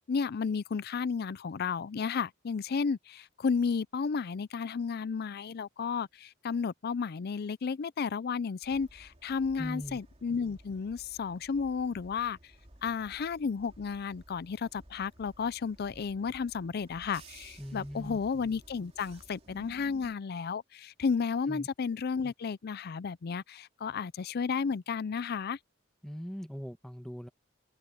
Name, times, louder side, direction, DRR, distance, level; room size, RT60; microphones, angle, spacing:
voice 1, 0.1-12.4 12.8-25.6, left 5 dB, 55° left, 0.4 m, -33 dB
sound 1, 8.6-20.1, right 1 dB, 35° right, 3.2 m, -56 dB
voice 2, 9.5-10.0 17.6-18.2 21.5-21.7 26.0-27.3, equal, 5° left, 1.2 m, -40 dB
head